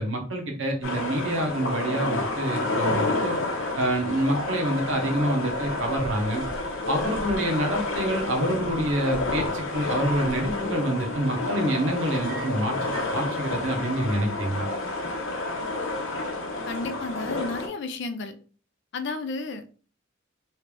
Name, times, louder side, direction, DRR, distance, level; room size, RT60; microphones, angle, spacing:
voice 1, 0.0-3.4 3.8-6.4 6.9-14.7, right 1 dB, 75° right, 3 dB, 0.9 m, -27 dB
sound 1, 0.8-17.7, left 2 dB, 85° left, 0.8 m, -30 dB
sound 2, 12.1-13.2, right 6 dB, 40° right, 0.6 m, -44 dB
voice 2, 16.7-18.4 18.9-19.7, left 3 dB, 60° left, 9 dB, 0.4 m, -32 dB
3.2 x 2.5 x 3.3 m, 0.40 s
head